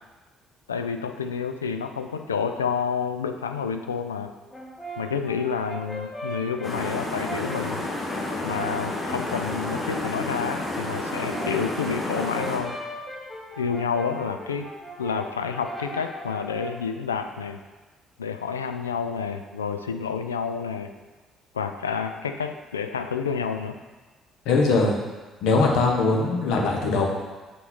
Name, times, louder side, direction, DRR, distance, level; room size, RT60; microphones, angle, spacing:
voice 1, 0.7-4.3 5.0-7.8 8.4-12.8 13.6-14.7 15.0-17.6 18.2-20.9 21.5-23.8, left 6 dB, 80° left, 7 dB, 0.3 m, -29 dB
Brass instrument, 4.5-10.1 11.0-16.9, equal, 20° left, 1.7 m, -39 dB
sound 1, 6.6-12.6, left 2 dB, 40° left, 1.4 m, -30 dB
voice 2, 24.4-25.0 25.4-27.1, left 3 dB, 60° left, 1 dB, 1.0 m, -21 dB
6.2 x 5.6 x 3.9 m, 1.2 s
figure-of-eight pair, 50°, 0 cm